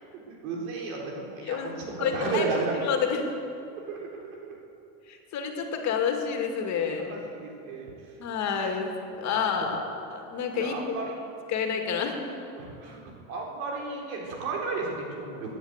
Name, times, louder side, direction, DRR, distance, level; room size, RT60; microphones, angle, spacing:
voice 1, 0.3-2.8 3.7-4.5 7.1-8.1 9.6-9.7 10.6-11.1 12.5-15.5, right 4 dB, 90° right, -1 dB, 4.0 m, -33 dB
voice 2, 1.4-2.5 2.8-3.3 5.1-7.2 8.2-8.9 9.2-9.8 10.1-11.0 11.5-12.2, left 6 dB, 45° left, 3 dB, 2.4 m, -29 dB
18.0 x 9.7 x 8.2 m, 2.7 s
supercardioid pair, 135°, 41 cm